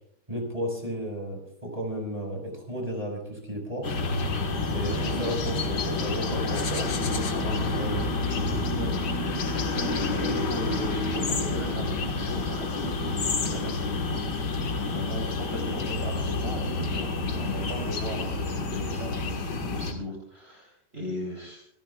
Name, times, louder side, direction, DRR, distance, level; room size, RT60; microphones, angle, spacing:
voice 1, 0.3-3.9 4.7-8.9, equal, 20° right, 1 dB, 5.3 m, -34 dB
sound 1, 3.8-19.9, left 3 dB, 75° left, 2.2 m, -29 dB
voice 2, 4.8-5.2 5.5-5.8 10.1-19.5 19.7-21.7, equal, 35° right, -1 dB, 3.7 m, -38 dB
27.0 x 18.0 x 2.3 m, 0.65 s
omnidirectional pair, 1.8 m